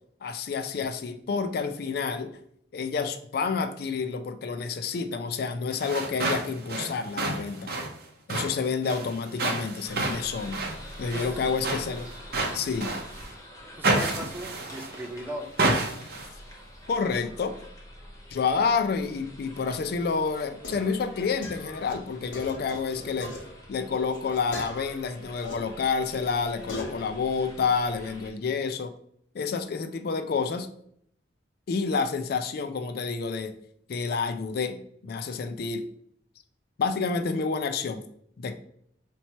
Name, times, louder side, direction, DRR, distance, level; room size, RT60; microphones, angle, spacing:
voice 1, 0.2-2.3 2.7-7.7 8.3-10.6 11.0-12.1 12.5-12.9 16.9-17.5 18.3-23.3 23.7-28.9 29.3-30.7 31.7-33.5 33.9-35.8 36.8-38.0 38.4-38.5, left 5 dB, 55° left, 7 dB, 0.3 m, -29 dB
sound 1, 5.7-13.3 13.8-15.1 15.6-16.3, right 2 dB, 55° right, 0.7 m, -30 dB
sound 2, 9.8-28.3, equal, 15° left, 0.9 m, -47 dB
voice 2, 11.1-11.4 13.8-15.5, equal, 10° right, 3 dB, 0.4 m, -37 dB
sound 3, 20.1-25.5 25.9-27.1, left 1 dB, 80° left, 1.1 m, -41 dB
4.4 x 2.9 x 2.9 m, 0.68 s
head